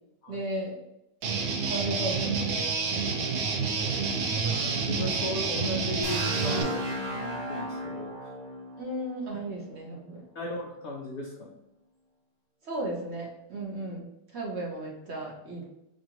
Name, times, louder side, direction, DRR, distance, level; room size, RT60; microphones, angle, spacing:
voice 1, 0.3-0.8 1.7-3.1 8.8-10.2 12.6-15.6, right 1 dB, 50° right, -3 dB, 1.0 m, -35 dB
Guitar, 1.2-6.6, right 5 dB, 70° right, 0.6 m, -28 dB
voice 2, 4.4-8.3 10.3-11.5, left 1 dB, 85° left, 1 dB, 0.6 m, -36 dB
sound 1, 6.0-9.9, equal, 20° right, 1.1 m, -35 dB
4.7 x 2.5 x 2.9 m, 0.86 s
omnidirectional pair, 1.8 m